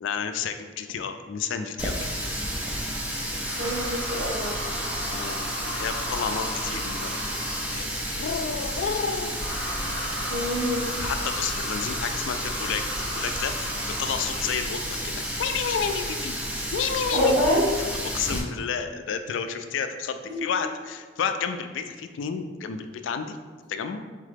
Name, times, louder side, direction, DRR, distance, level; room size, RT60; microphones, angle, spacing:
voice 1, 0.0-2.0 5.1-7.2 7.7-7.9 8.1-9.4 11.0-16.4 16.7-17.4 18.1-23.4 23.7-24.0, left 6 dB, 75° left, 8 dB, 0.3 m, -31 dB
Water tap faucet, 1.8-18.4, equal, 5° right, 0.4 m, -31 dB
sound 1, 3.4-7.9 9.3-14.8, equal, 80° right, 0.9 m, -37 dB
voice 2, 3.6-4.6 10.3-10.9 17.1-17.7 20.3-20.4, left 1 dB, 55° right, -7 dB, 1.4 m, -25 dB
3.7 x 3.6 x 3.5 m, 1.4 s
head